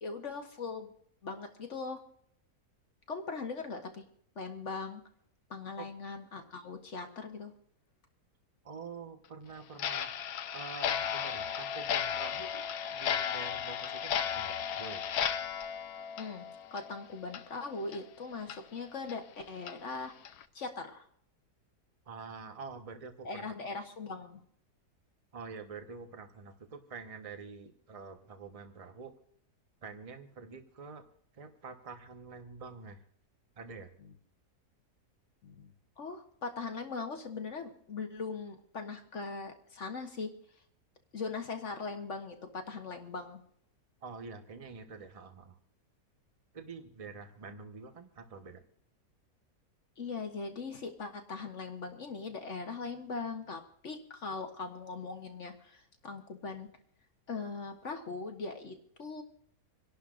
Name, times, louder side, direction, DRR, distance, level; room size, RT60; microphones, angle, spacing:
voice 1, 0.0-0.9 1.2-2.0 3.1-4.0 4.4-5.0 5.5-7.5 16.2-16.4 16.7-20.1 20.5-21.1 23.2-24.4 34.0-34.1 35.4-40.3 41.1-43.4 50.0-56.7 57.3-59.2, left 4 dB, 50° left, 5 dB, 1.3 m, -40 dB
voice 2, 8.6-10.1 10.5-12.6 12.9-15.0 22.1-23.5 25.3-29.1 29.8-31.0 31.3-33.0 33.6-33.9 44.0-45.6 46.5-48.6, right 5 dB, 25° right, 6 dB, 1.0 m, -46 dB
Clock, 9.8-17.0 17.3-17.4 17.9-18.0 18.5-18.6 19.1-19.2 19.7-19.8 20.2-20.4, left 8 dB, 70° left, 1.2 m, -35 dB
27.0 x 11.5 x 2.5 m, 0.66 s
omnidirectional pair, 1.7 m